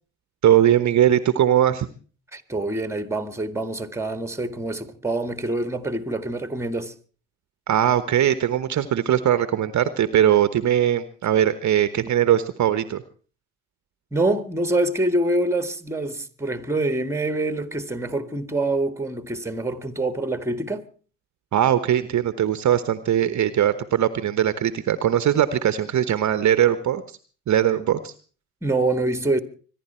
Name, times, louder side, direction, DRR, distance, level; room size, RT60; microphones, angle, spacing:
voice 1, 0.4-1.9 7.7-13.0 21.5-27.0 27.5-28.1, right 10 dB, 45° right, 1.1 m, -20 dB
voice 2, 2.3-6.9 14.1-20.9 28.6-29.4, right 2 dB, 5° right, 1.9 m, -25 dB
25.5 x 11.0 x 4.4 m
hypercardioid pair, 65°, 41 cm